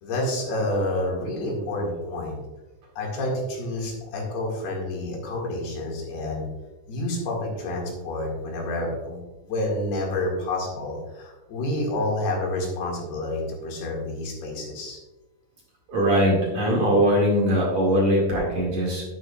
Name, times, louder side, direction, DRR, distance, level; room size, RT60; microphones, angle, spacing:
voice 1, 0.0-2.4 3.0-6.5 6.9-15.0, left 1 dB, 75° left, -1 dB, 4.0 m, -29 dB
voice 2, 15.9-19.0, equal, 45° right, -4 dB, 2.8 m, -21 dB
10.5 x 10.5 x 2.4 m, 1.1 s
omnidirectional pair, 4.7 m